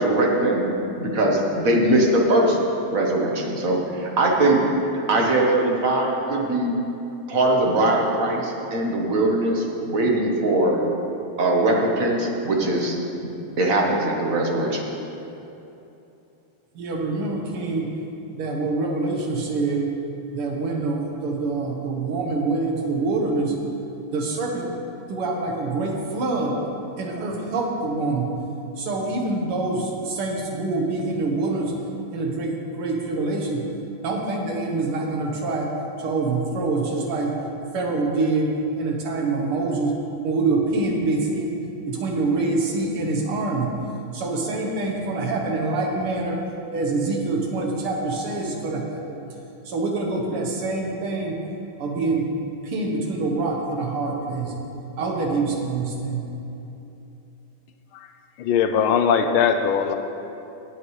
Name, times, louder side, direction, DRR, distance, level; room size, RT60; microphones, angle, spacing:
voice 1, 0.0-2.6 2.9-4.7 5.1-6.8 7.3-10.8 11.4-13.0 13.6-14.8, right 1 dB, 45° right, 0 dB, 1.4 m, -21 dB
voice 2, 16.8-17.9 18.3-19.9 20.3-23.6 24.1-24.7 25.1-26.6 27.0-28.4 28.8-31.7 32.1-33.6 34.0-35.7 36.0-37.4 37.7-40.0 40.2-41.5 41.9-43.7 44.1-46.4 46.7-49.2 49.7-51.3 51.8-52.3 52.6-54.6 55.0-56.3, right 3 dB, 80° right, 0 dB, 2.2 m, -25 dB
voice 3, 58.4-59.9, left 7 dB, 80° left, 7 dB, 1.4 m, -20 dB
19.0 x 8.2 x 3.2 m, 2.9 s
omnidirectional pair, 2.4 m